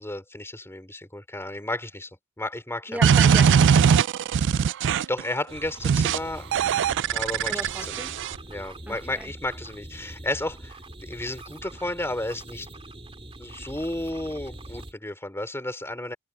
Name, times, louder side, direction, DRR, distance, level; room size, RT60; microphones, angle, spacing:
voice 1, 0.0-2.1 2.4-3.0 5.1-6.5 7.1-8.0 8.5-12.7 13.4-16.2, left 1 dB, 10° left, 3.9 m, -33 dB
voice 2, 2.9-4.0 7.5-8.1 8.9-9.3, right 1 dB, 10° right, 1.4 m, -35 dB
sound 1, 3.0-5.2 5.8-6.2 6.5-8.4, right 7 dB, 55° right, 0.4 m, -20 dB
sound 2, 5.5-14.9, right 1 dB, 25° right, 2.7 m, -43 dB
head